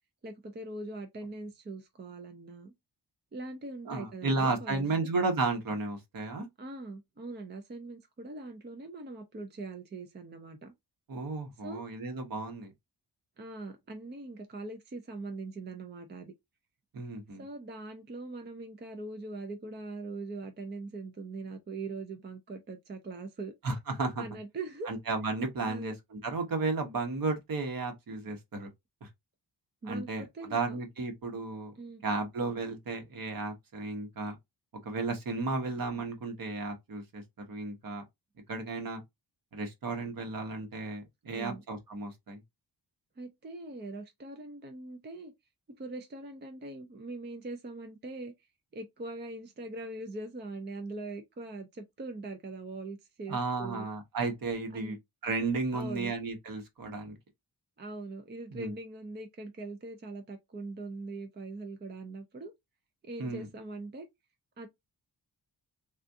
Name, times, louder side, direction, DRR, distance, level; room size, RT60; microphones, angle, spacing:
voice 1, 0.2-2.7 3.3-4.9 6.6-10.7 11.6-11.8 13.4-16.3 17.4-23.5 24.2-24.9 25.7-25.9 29.8-30.8 31.8-32.0 41.3-41.6 43.2-45.3 45.8-48.3 48.7-53.9 54.7-55.0 55.7-56.1 57.8-62.5 63.0-64.1 64.6-64.7, right 2 dB, 25° right, 0.4 m, -42 dB
voice 2, 3.9-6.5 11.1-12.7 16.9-17.4 23.6-24.2 24.9-28.7 29.0-29.1 29.9-31.7 32.0-34.3 34.8-38.0 38.5-39.0 39.5-42.4 53.3-55.0 55.2-57.2 58.5-58.7 63.2-63.5, right 3 dB, 55° right, 1.0 m, -33 dB
3.5 x 2.4 x 2.6 m
wide cardioid pair, 175°, 40 cm